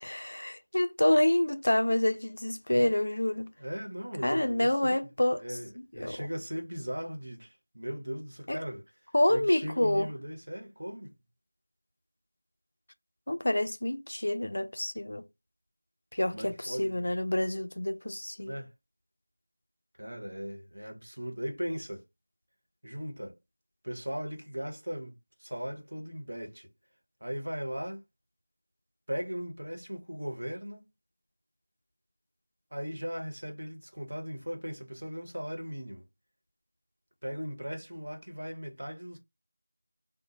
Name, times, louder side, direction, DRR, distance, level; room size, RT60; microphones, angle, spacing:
voice 1, 0.0-3.5 4.2-5.4 6.0-6.2 8.5-8.6 9.1-10.1 13.3-15.2 16.1-18.5, left 1 dB, 50° left, 0.4 m, -27 dB
voice 2, 3.6-5.1 5.4-8.8 9.3-11.1 16.3-17.1 18.4-18.7 20.0-22.0 22.8-23.3 23.8-25.1 25.4-26.7 27.2-28.0 29.1-30.8 32.7-36.1 37.2-39.2, equal, 65° right, 1.0 m, -38 dB
2.8 x 2.0 x 3.0 m
figure-of-eight pair, 180°, 0 cm